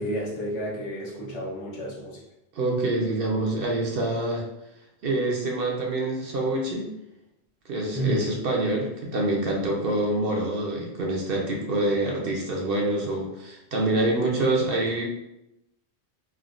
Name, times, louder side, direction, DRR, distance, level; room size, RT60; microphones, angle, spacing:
voice 1, 0.0-2.1 7.9-8.2, right 1 dB, 85° left, -5 dB, 1.2 m, -30 dB
voice 2, 2.5-4.5 5.0-6.9 7.7-15.1, right 2 dB, 60° right, -1 dB, 0.7 m, -26 dB
3.4 x 2.1 x 2.4 m, 0.88 s
omnidirectional pair, 1.2 m